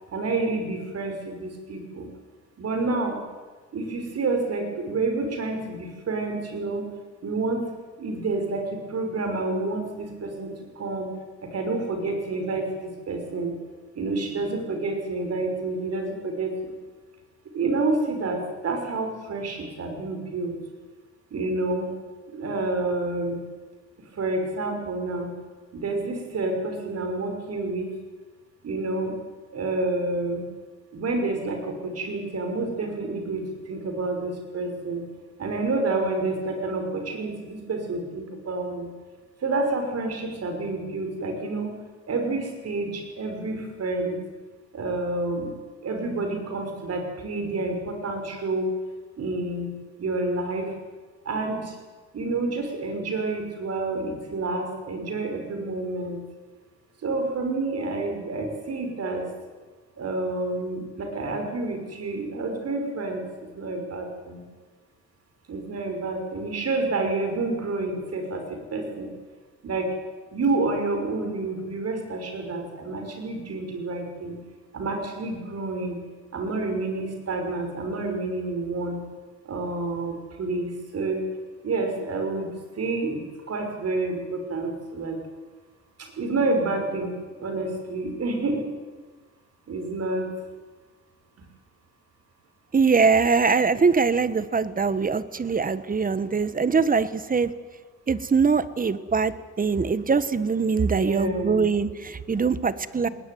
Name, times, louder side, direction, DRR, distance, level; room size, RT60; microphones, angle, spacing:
voice 1, 0.1-2.1 2.6-3.2 3.7-6.9 7.2-7.7 8.0-11.2 11.5-13.5 14.0-16.7 17.5-20.6 21.3-21.9 22.3-23.4 24.2-25.3 25.7-27.9 28.6-29.2 29.5-30.4 30.9-35.0 35.4-38.9 39.4-41.8 42.1-44.2 44.7-45.5 45.8-48.7 49.2-49.7 50.0-50.7 51.2-51.8 52.1-56.2 57.0-59.3 60.0-64.4 65.5-68.4 68.7-69.1 69.6-69.9 70.3-74.3 74.7-76.0 76.3-79.0 79.4-81.3 81.6-83.2 83.5-85.2 86.0-88.7 89.7-90.3 100.9-101.7, right 3 dB, 55° right, 5 dB, 6.0 m, -29 dB
voice 2, 92.7-97.5 98.1-103.1, right 5 dB, 30° right, 15 dB, 1.3 m, -22 dB
20.0 x 19.5 x 9.4 m, 1.4 s
cardioid pair, 90°, 30 cm